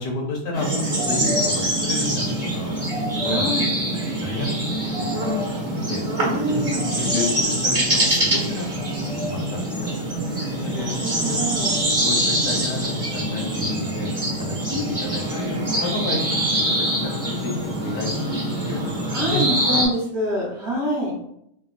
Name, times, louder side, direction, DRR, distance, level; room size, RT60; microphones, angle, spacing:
voice 1, 0.0-1.5 1.8-4.8 5.4-6.0 6.5-8.8 9.1-9.9 10.2-11.4 11.6-11.8 12.0-16.8 17.0-19.8, left 2 dB, 85° left, 0 dB, 1.4 m, -31 dB
sound 1, 0.5-19.9, right 1 dB, 25° right, 0.8 m, -24 dB
voice 2, 3.2-3.7 6.2-6.9 10.7-11.7 14.6-15.0 18.7-18.8 19.1-21.1, equal, 45° right, -6 dB, 1.1 m, -26 dB
3.4 x 2.1 x 2.4 m, 0.75 s
omnidirectional pair, 1.8 m